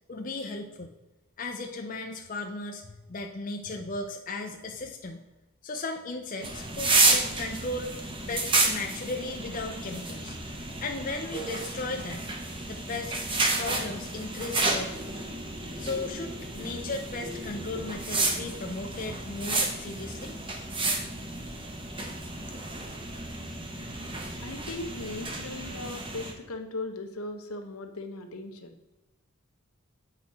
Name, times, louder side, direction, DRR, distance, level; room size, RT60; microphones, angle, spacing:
voice 1, 0.1-0.9 1.4-5.2 5.6-8.0 8.3-10.4 10.8-12.3 12.7-13.2 13.6-15.1 15.8-20.4, left 3 dB, 40° left, 4 dB, 0.5 m, -36 dB
sound 1, 6.4-26.3, right 2 dB, 25° right, 0.9 m, -31 dB
voice 2, 24.4-28.8, left 2 dB, 85° left, 6 dB, 0.9 m, -38 dB
7.7 x 4.9 x 4.2 m, 1.0 s
head